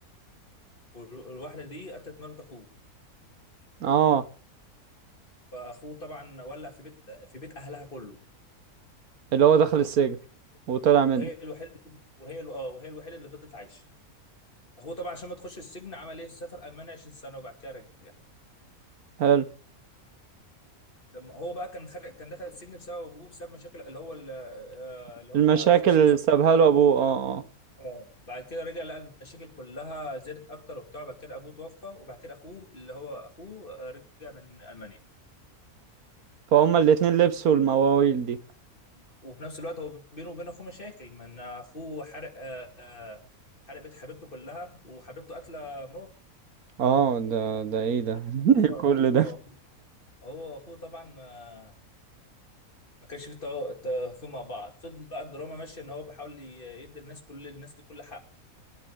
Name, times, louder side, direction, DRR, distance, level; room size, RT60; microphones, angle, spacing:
voice 1, 0.9-2.7 5.5-8.2 11.1-13.8 14.8-18.1 21.1-26.0 27.8-35.0 39.2-43.2 43.7-46.1 48.4-49.5 50.2-51.7 53.1-58.2, equal, 35° left, 2.7 m, -41 dB
voice 2, 3.8-4.2 9.3-10.2 10.7-11.3 19.2-19.5 25.3-27.4 36.5-38.4 46.8-49.3, right 8 dB, 80° right, 1.5 m, -21 dB
21.0 x 10.0 x 3.6 m
omnidirectional pair, 1.5 m